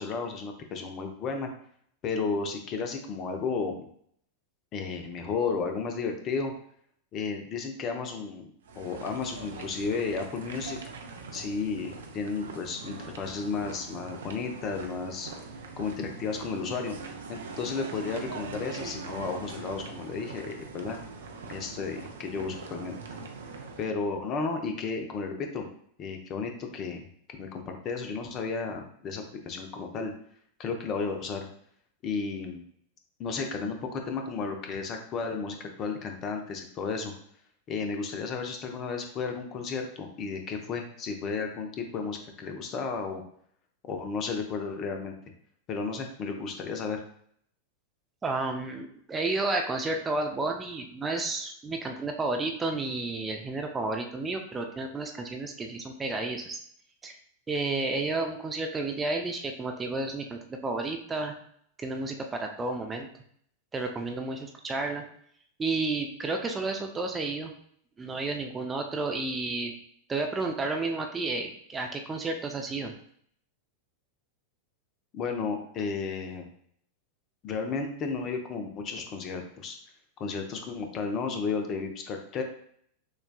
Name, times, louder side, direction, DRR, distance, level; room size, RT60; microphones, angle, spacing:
voice 1, 0.0-1.5 2.0-3.9 4.7-6.5 7.1-8.5 8.8-10.8 11.3-15.3 15.8-16.9 17.3-21.0 21.5-23.0 23.8-25.7 26.0-27.0 27.4-30.1 30.6-31.5 32.0-32.6 33.2-37.1 37.7-43.2 43.8-45.1 45.7-47.0 75.1-76.5 77.4-79.7 80.2-82.4, left 4 dB, 35° left, 4 dB, 0.6 m, -33 dB
sound 1, 8.7-23.9, right 4 dB, 65° right, 0.5 m, -42 dB
voice 2, 48.2-56.6 57.0-57.2 57.5-61.3 61.8-63.1 63.7-65.0 65.6-67.5 68.0-69.7 70.1-72.9, right 3 dB, 15° right, 3 dB, 0.5 m, -31 dB
6.4 x 2.3 x 2.2 m, 0.64 s
figure-of-eight pair, 90°, 0 cm